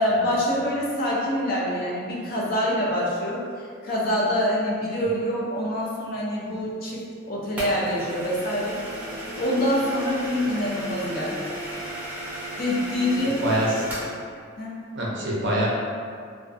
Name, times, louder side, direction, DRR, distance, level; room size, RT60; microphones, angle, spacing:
voice 1, 0.0-3.4 3.8-8.8 9.4-11.5 12.6-13.4 14.6-14.7, equal, 45° left, -4 dB, 0.4 m, -25 dB
sound 1, 7.6-14.2, right 1 dB, 10° right, 0.5 m, -35 dB
voice 2, 13.2-13.8 14.9-15.7, right 1 dB, 55° right, -4 dB, 0.5 m, -25 dB
2.3 x 2.3 x 2.5 m, 2.2 s
head